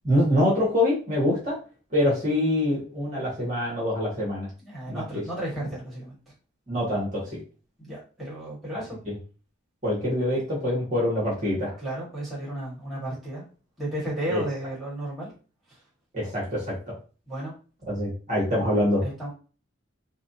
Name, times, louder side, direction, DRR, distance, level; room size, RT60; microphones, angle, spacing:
voice 1, 0.0-1.6 1.9-4.5 4.9-5.0 6.7-7.2 9.1-9.2 9.8-11.7 14.3-14.4 16.1-16.7 17.9-19.0, left 1 dB, 35° right, -5 dB, 1.7 m, -25 dB
voice 2, 4.6-6.2 7.8-9.0 11.8-13.4 13.8-15.3 17.3-17.5 19.0-19.3, right 1 dB, ahead, -7 dB, 1.9 m, -33 dB
4.8 x 2.5 x 2.9 m, 0.36 s
head